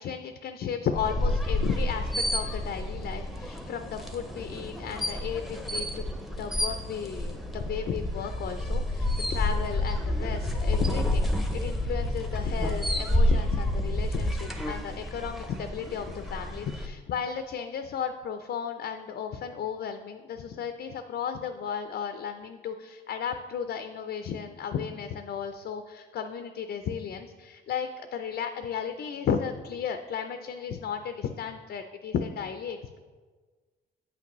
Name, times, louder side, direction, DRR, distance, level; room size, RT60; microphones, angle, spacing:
voice 1, 0.0-6.0 6.4-33.0, left 7 dB, 55° left, 8 dB, 0.4 m, -34 dB
sound 1, 0.9-16.9, left 1 dB, ahead, 0.7 m, -29 dB
8.2 x 5.9 x 3.0 m, 1.4 s
cardioid pair, 90°, 20 cm